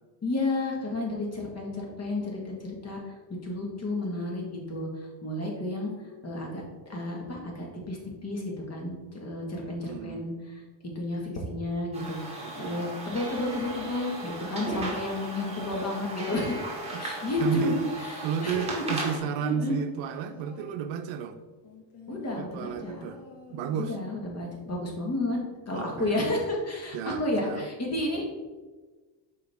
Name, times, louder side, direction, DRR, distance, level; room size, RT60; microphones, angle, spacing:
voice 1, 0.2-3.0 3.4-4.9 5.2-5.9 6.2-6.6 6.9-10.6 10.9-16.6 17.0-19.1 19.4-19.8 22.1-23.0 23.7-25.4 25.7-28.2, left 1 dB, 35° left, 0 dB, 1.8 m, -31 dB
voice 2, 9.8-10.2 12.4-12.8 16.9-17.1 17.4-17.8 18.2-21.4 22.4-23.2 23.5-24.0 25.7-26.2 26.9-27.7, right 7 dB, 70° right, 8 dB, 0.7 m, -32 dB
sound 1, 11.9-19.2, right 2 dB, 15° right, 2.0 m, -37 dB
sound 2, 19.1-21.0 21.6-24.0 24.4-24.5, left 5 dB, 60° left, 1.5 m, -48 dB
6.9 x 4.9 x 3.5 m, 1.3 s
cardioid pair, 120°, 46 cm